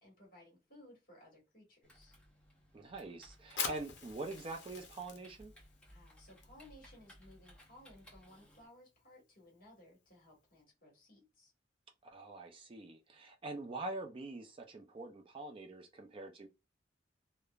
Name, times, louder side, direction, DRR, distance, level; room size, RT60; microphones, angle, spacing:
voice 1, 0.0-2.1 5.9-11.5, left 1 dB, 50° left, 1.5 m, -60 dB
Typing, 1.8-8.7, equal, 5° left, 0.9 m, -61 dB
voice 2, 2.7-5.5 12.0-16.5, right 2 dB, 30° right, 0.3 m, -44 dB
Fire, 3.4-10.6, left 6 dB, 65° left, 0.7 m, -47 dB
3.1 x 2.0 x 2.3 m
head